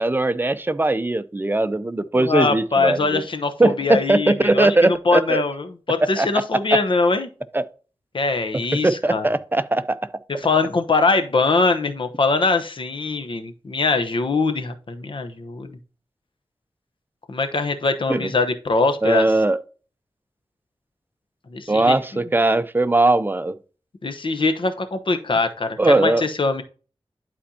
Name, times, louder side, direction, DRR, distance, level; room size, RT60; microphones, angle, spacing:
voice 1, 0.0-3.2 3.6-5.4 6.2-6.3 7.5-7.6 8.8-10.0 18.1-18.3 19.0-19.6 21.7-23.6 25.8-26.3, right 2 dB, 20° right, 0.6 m, -19 dB
voice 2, 2.1-7.3 8.1-9.3 10.3-15.8 17.3-19.3 21.5-21.9 24.0-26.6, left 3 dB, 60° left, 0.9 m, -22 dB
11.0 x 4.4 x 2.8 m
wide cardioid pair, 70°, 10 cm